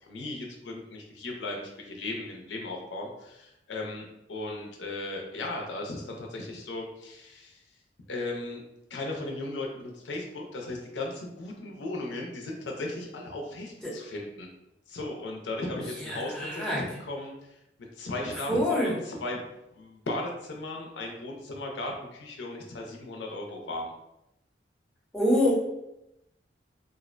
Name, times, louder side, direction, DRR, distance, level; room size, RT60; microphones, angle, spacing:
voice 1, 0.0-7.6 8.1-8.6 8.9-14.5 14.9-17.6 18.0-19.4 19.7-23.9, left 2 dB, 90° left, 0 dB, 0.5 m, -36 dB
voice 2, 16.0-16.8 18.5-18.9 25.1-25.5, left 1 dB, 5° left, -6 dB, 0.5 m, -26 dB
2.4 x 2.1 x 2.4 m, 0.86 s
head